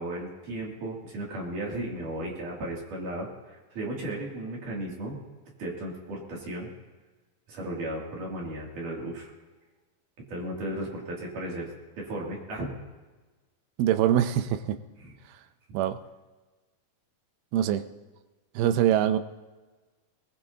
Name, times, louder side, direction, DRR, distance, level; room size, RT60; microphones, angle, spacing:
voice 1, 0.0-5.2 5.6-6.7 7.5-9.3 10.3-12.7 15.0-15.1, right 1 dB, 60° right, -3 dB, 4.1 m, -35 dB
voice 2, 13.8-14.8 15.7-16.0 17.5-17.9 18.6-19.2, right 11 dB, 85° right, 10 dB, 2.5 m, -23 dB
21.0 x 20.5 x 2.8 m, 1.2 s
omnidirectional pair, 4.3 m